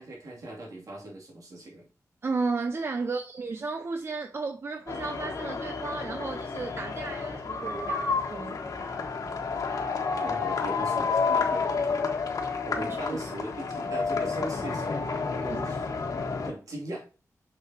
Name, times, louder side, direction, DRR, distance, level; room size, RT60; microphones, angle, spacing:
voice 1, 0.0-1.9 10.2-12.1 12.6-15.0 15.4-15.9 16.4-17.0, right 1 dB, 65° right, 2.6 m, -39 dB
voice 2, 2.2-8.6 12.8-13.0 15.5-15.6, right 4 dB, 40° right, 0.5 m, -33 dB
sound 1, 4.9-16.5, left 4 dB, 75° left, 1.4 m, -30 dB
6.7 x 6.6 x 2.9 m
wide cardioid pair, 175°, 6 cm